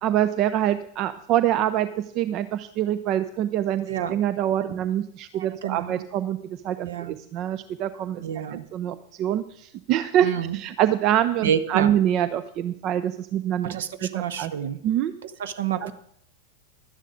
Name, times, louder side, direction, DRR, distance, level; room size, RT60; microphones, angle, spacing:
voice 1, 0.0-8.2 8.5-10.3 10.5-13.7 14.0-14.5 14.8-15.1 15.8-15.9, right 11 dB, 40° right, 13 dB, 0.4 m, -25 dB
voice 2, 5.3-6.0 6.8-7.1 8.2-8.6 10.2-10.6 11.4-11.9 13.6-14.8 15.2-15.9, right 9 dB, 60° right, 12 dB, 0.8 m, -29 dB
12.0 x 9.9 x 5.0 m, 0.71 s
figure-of-eight pair, 90°, 0 cm